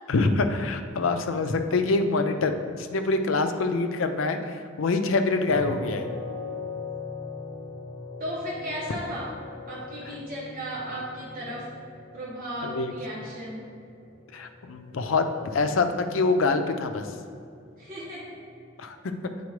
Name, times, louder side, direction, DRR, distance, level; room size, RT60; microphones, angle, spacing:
voice 1, 0.1-6.1 12.6-12.9 14.3-15.2 15.5-17.1 18.8-19.0, left 3 dB, 85° left, 7 dB, 0.5 m, -25 dB
sound 1, 5.5-18.5, left 4 dB, 45° left, 1.0 m, -41 dB
voice 2, 8.2-9.4 9.7-11.7 12.1-13.8 17.8-18.4, equal, 45° right, -5 dB, 1.0 m, -35 dB
8.3 x 4.2 x 3.2 m, 2.3 s
head